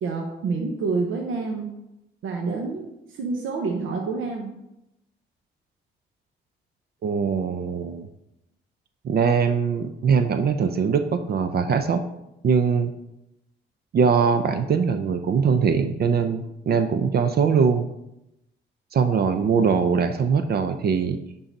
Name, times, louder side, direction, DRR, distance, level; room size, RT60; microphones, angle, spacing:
voice 1, 0.0-1.7 2.2-2.8 3.1-4.5, right 4 dB, 80° right, 2 dB, 1.0 m, -27 dB
voice 2, 7.0-8.1 9.0-12.0 12.4-12.9 13.9-17.9 18.9-21.2, right 6 dB, 50° right, 9 dB, 0.6 m, -22 dB
10.0 x 3.9 x 4.0 m, 0.87 s
cardioid pair, 90°, 20 cm